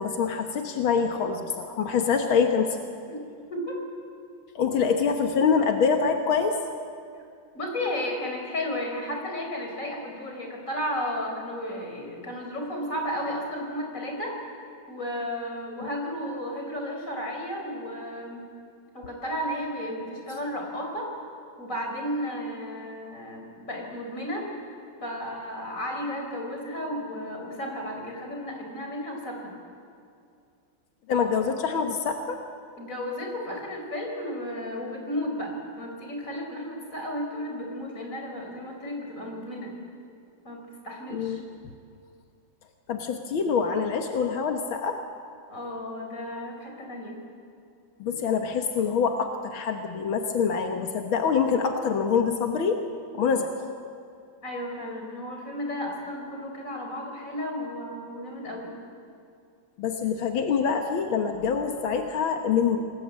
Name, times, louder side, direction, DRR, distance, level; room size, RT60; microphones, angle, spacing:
voice 1, 0.0-2.8 4.6-6.6 31.1-32.4 41.1-41.6 42.9-45.0 48.0-52.8 53.1-53.5 59.8-62.8, left 6 dB, 90° left, 4 dB, 2.2 m, -25 dB
voice 2, 7.5-14.4 14.9-18.4 18.9-21.1 21.6-24.4 25.0-29.5 32.8-39.7 40.4-40.6 40.8-41.4 45.5-47.1 48.1-48.2 54.4-58.7, equal, 40° left, 1 dB, 5.3 m, -33 dB
27.5 x 20.0 x 8.5 m, 2.4 s
omnidirectional pair, 2.1 m